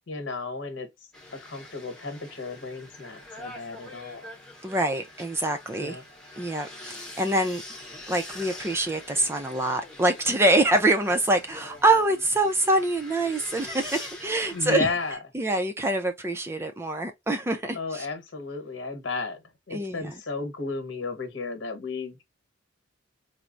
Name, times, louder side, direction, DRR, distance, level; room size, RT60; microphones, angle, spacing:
voice 1, 0.1-0.9 1.4-4.3 5.8-6.0 14.5-15.2 17.7-19.4 19.7-22.2, left 3 dB, 65° left, 1.2 m, -33 dB
sound 1, 1.1-15.2, left 1 dB, 5° left, 0.8 m, -44 dB
voice 2, 4.6-6.0 6.4-7.6 8.1-14.9 15.3-18.1 19.7-20.1, right 2 dB, 10° right, 0.3 m, -25 dB
4.4 x 2.0 x 2.5 m
head